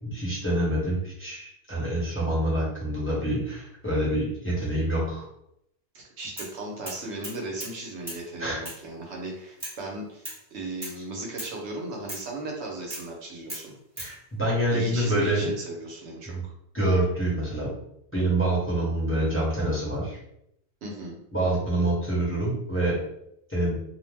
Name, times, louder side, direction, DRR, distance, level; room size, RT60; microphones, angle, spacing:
voice 1, 0.0-5.3 8.4-8.6 14.0-15.5 16.2-16.4 16.7-17.7 18.1-20.2 21.3-23.0 23.5-23.7, right 1 dB, 10° left, -8 dB, 0.9 m, -26 dB
voice 2, 5.9-13.6 14.7-16.4 20.8-21.2, right 2 dB, 75° right, -1 dB, 1.0 m, -36 dB
sound 1, 6.4-6.6 6.9-7.8 8.1-8.2 8.7-8.8 9.6-9.8 10.3-10.4 10.8-11.0 11.4-11.6 12.1-12.3 12.9-13.1 13.5-14.1, right 1 dB, 15° right, 1.0 m, -38 dB
2.5 x 2.1 x 3.3 m, 0.75 s
omnidirectional pair, 1.1 m